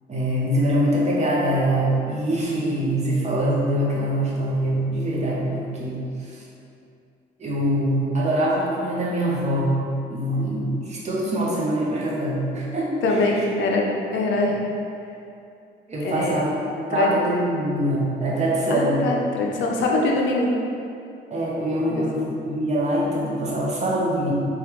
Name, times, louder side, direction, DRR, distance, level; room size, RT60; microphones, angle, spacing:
voice 1, 0.1-6.0 7.4-9.8 10.1-13.0 15.9-16.6 16.9-19.0 21.3-24.3, right 1 dB, 35° right, -5 dB, 0.7 m, -23 dB
voice 2, 13.0-14.6 16.0-16.4 16.9-17.1 18.7-20.5 21.9-22.2, left 2 dB, 70° left, -1 dB, 0.5 m, -23 dB
3.1 x 2.3 x 2.9 m, 2.6 s
cardioid pair, 90°, 20 cm